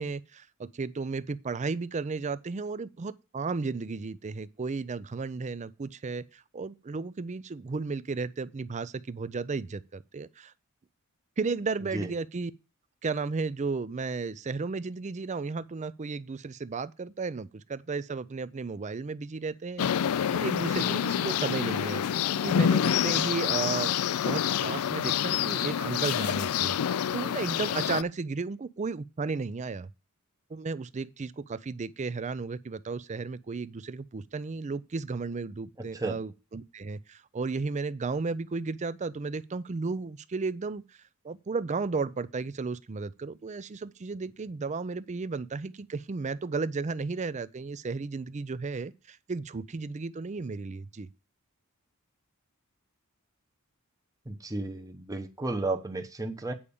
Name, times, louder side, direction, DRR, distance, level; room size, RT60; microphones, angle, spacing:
voice 1, 0.0-10.5 11.4-12.5 13.0-22.0 22.3-23.9 24.2-29.9 30.5-40.8 41.2-51.1, right 4 dB, 35° right, 0.4 m, -34 dB
sound 1, 19.8-28.0, left 9 dB, 80° left, 0.4 m, -27 dB
voice 2, 54.3-56.5, right 2 dB, 15° right, 0.9 m, -33 dB
8.6 x 4.9 x 7.0 m
head